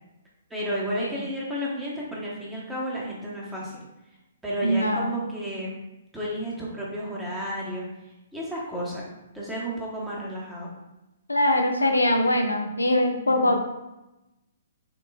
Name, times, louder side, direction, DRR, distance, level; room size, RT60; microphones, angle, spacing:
voice 1, 0.5-3.8 4.4-5.8 6.1-7.8 8.3-9.0 9.3-10.7 13.2-13.6, equal, 5° right, -5 dB, 1.1 m, -32 dB
voice 2, 4.6-5.2 11.3-13.6, left 1 dB, 80° left, 4 dB, 0.5 m, -22 dB
6.5 x 2.4 x 2.3 m, 0.96 s
figure-of-eight pair, 125°, 0 cm